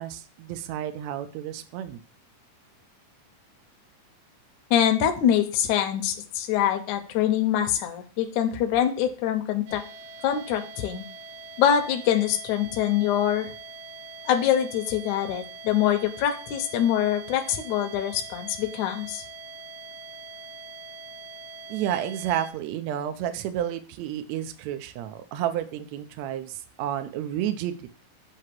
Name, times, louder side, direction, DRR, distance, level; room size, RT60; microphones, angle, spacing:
voice 1, 0.0-2.0 21.7-28.0, right 11 dB, 85° right, 8 dB, 1.5 m, -31 dB
voice 2, 4.7-9.8 10.2-11.0 11.6-13.5 14.3-19.2, left 10 dB, 70° left, 5 dB, 1.9 m, -24 dB
sound 1, 9.7-22.5, right 4 dB, 70° right, 2.1 m, -43 dB
7.8 x 2.9 x 5.9 m, 0.39 s
omnidirectional pair, 4.0 m